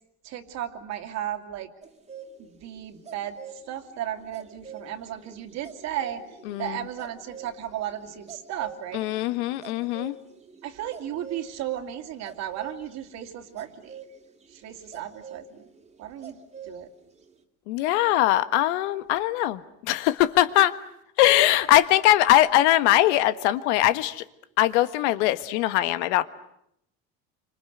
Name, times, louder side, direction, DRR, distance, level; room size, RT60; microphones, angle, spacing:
voice 1, 0.2-1.7 2.5-6.2 6.6-9.1 10.6-13.9 14.5-15.6 16.0-16.4 16.6-16.9, right 11 dB, 50° right, 7 dB, 2.7 m, -35 dB
sound 1, 1.8-11.5 12.2-16.8 17.0-17.3, right 6 dB, 20° right, 2.6 m, -45 dB
voice 2, 6.5-6.8 8.9-10.1 17.7-20.8 21.2-24.2 24.6-26.2, left 14 dB, 90° left, 12 dB, 1.5 m, -21 dB
28.0 x 26.0 x 8.1 m, 0.77 s
cardioid pair, 135°, 34 cm